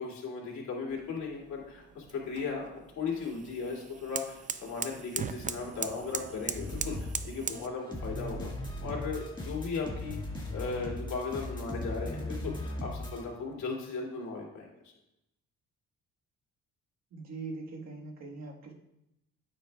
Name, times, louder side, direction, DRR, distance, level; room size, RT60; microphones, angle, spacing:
voice 1, 0.0-8.5 8.8-10.2 10.5-14.9, left 4 dB, 65° left, -2 dB, 2.6 m, -37 dB
sound 1, 0.9-7.7, right 6 dB, 25° right, 0.4 m, -40 dB
sound 2, 6.5-7.2 7.4-13.2, left 1 dB, 15° left, 1.7 m, -38 dB
voice 2, 17.1-18.7, right 3 dB, 60° right, 1 dB, 1.5 m, -41 dB
9.1 x 7.3 x 2.3 m, 0.86 s
cardioid pair, 90°, 30 cm